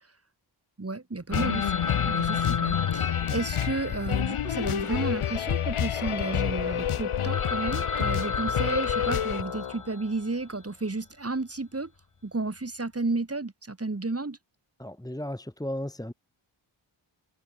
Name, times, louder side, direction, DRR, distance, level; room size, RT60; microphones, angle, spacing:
voice 1, 0.8-11.9 12.2-14.4, right 3 dB, 30° right, 7.4 m, -32 dB
sound 1, 1.3-9.4, left 9 dB, 90° left, 1.3 m, -28 dB
Telephone, 1.3-5.7 5.9-6.0 6.6-6.7 7.0-7.1 7.3-10.3, left 4 dB, 40° left, 4.3 m, -34 dB
Organ, 5.9-10.5, left 8 dB, 75° left, 1.8 m, -38 dB
voice 2, 14.8-16.1, left 1 dB, 5° left, 3.4 m, -35 dB
wide cardioid pair, 100°, 48 cm